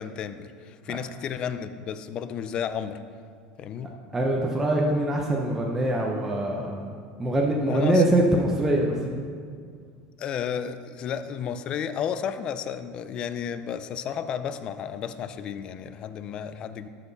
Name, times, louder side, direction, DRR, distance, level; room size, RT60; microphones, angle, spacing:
voice 1, 0.0-3.0 3.6-3.9 7.7-8.0 10.2-16.9, left 8 dB, 35° left, 11 dB, 0.4 m, -32 dB
voice 2, 4.1-6.9 7.2-9.0, right 1 dB, 10° right, -2 dB, 0.7 m, -23 dB
13.5 x 5.9 x 4.0 m, 2.1 s
supercardioid pair, 155°, 3 cm